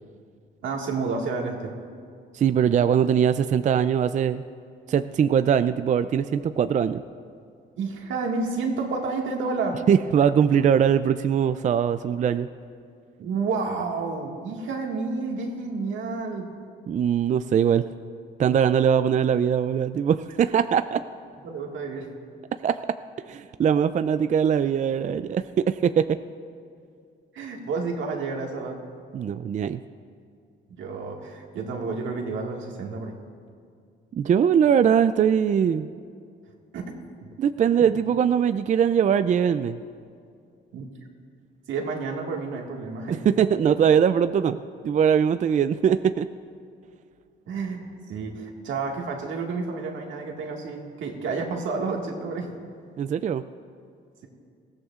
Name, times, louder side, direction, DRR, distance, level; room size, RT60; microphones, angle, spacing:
voice 1, 0.6-1.7 7.8-9.8 13.2-16.5 21.4-22.1 27.3-28.8 30.8-33.2 36.7-36.9 40.7-40.9 41.7-43.2 47.5-52.5, right 4 dB, 80° right, 1 dB, 1.8 m, -30 dB
voice 2, 2.3-4.4 4.9-7.0 9.9-12.5 16.9-17.8 18.4-21.0 22.6-22.8 23.3-26.2 29.1-29.8 34.2-35.9 37.4-39.8 43.2-44.6 44.8-46.3 53.0-53.4, right 8 dB, 40° right, 11 dB, 0.4 m, -21 dB
20.5 x 15.5 x 2.4 m, 2.3 s
cardioid pair, 90°, 20 cm